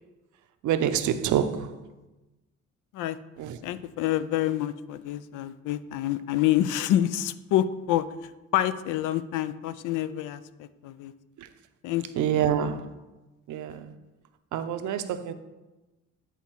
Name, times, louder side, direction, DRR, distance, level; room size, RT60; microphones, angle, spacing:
voice 1, 0.6-1.7 3.4-3.6 12.2-12.8 13.5-13.8 14.5-15.3, right 9 dB, 75° right, 0.7 m, -26 dB
voice 2, 3.6-8.0 8.5-11.1 11.8-12.5, left 12 dB, 90° left, 0.5 m, -27 dB
9.2 x 4.0 x 4.5 m
cardioid pair, 90°, 30 cm